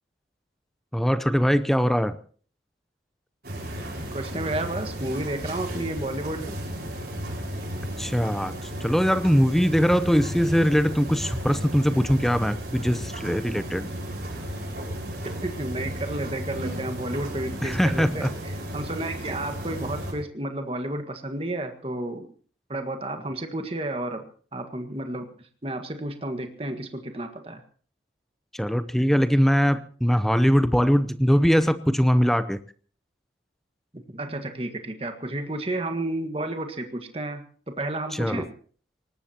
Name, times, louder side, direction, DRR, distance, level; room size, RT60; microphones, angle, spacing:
voice 1, 0.9-2.2 8.0-8.5 8.8-13.9 17.6-18.3 28.5-32.6 38.1-38.4, equal, ahead, 13 dB, 0.7 m, -21 dB
sound 1, 3.4-20.1, equal, 55° right, 6.1 m, -34 dB
voice 2, 4.1-6.6 15.4-22.3 22.7-24.2 24.5-25.3 25.6-27.6 33.9-38.5, right 1 dB, 30° right, 6 dB, 1.7 m, -31 dB
23.5 x 19.0 x 2.9 m, 0.44 s
head